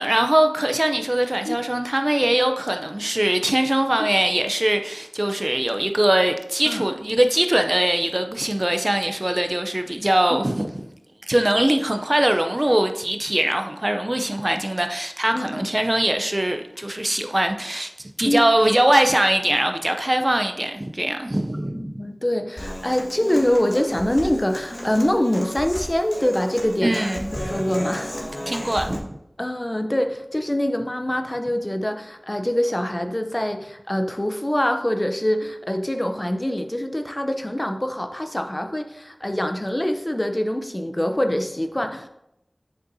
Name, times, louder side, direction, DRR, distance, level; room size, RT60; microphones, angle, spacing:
voice 1, 0.0-10.8 11.3-17.9 18.2-21.9 26.8-27.7 28.5-29.2, right 1 dB, 35° right, 0.5 m, -22 dB
voice 2, 15.3-15.7 18.3-18.4 21.6-27.0 27.3-28.1 29.4-42.1, left 1 dB, 25° left, 0.6 m, -24 dB
Human voice / Acoustic guitar, 22.6-29.0, equal, 45° left, 1.4 m, -33 dB
7.3 x 6.3 x 2.7 m
wide cardioid pair, 50°, 0 cm